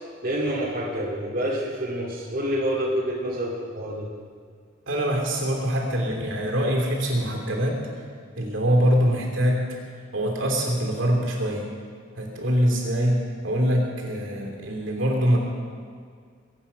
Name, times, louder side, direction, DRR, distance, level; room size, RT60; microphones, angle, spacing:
voice 1, 0.2-4.1, equal, 45° right, -7 dB, 2.4 m, -27 dB
voice 2, 4.9-7.8 8.3-9.6 10.1-11.7 12.2-13.2 13.4-15.4, equal, 65° right, 0 dB, 3.1 m, -23 dB
23.0 x 9.0 x 5.7 m, 2.1 s
head